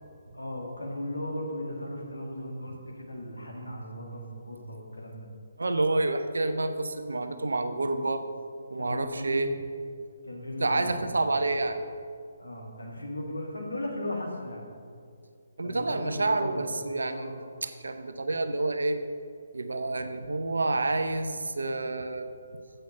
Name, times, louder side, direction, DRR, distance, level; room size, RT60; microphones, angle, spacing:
voice 1, 0.3-5.3 7.8-8.1 8.8-9.4 10.3-11.0 12.4-14.7 15.6-16.7 17.1-17.4, left 1 dB, 85° left, 0 dB, 2.1 m, -37 dB
voice 2, 5.6-8.2 8.7-9.6 10.6-11.8 15.6-17.3 17.6-19.0 19.5-22.3, right 2 dB, 75° right, 9 dB, 0.8 m, -28 dB
8.2 x 7.7 x 5.4 m, 2.3 s
figure-of-eight pair, 140°, 0 cm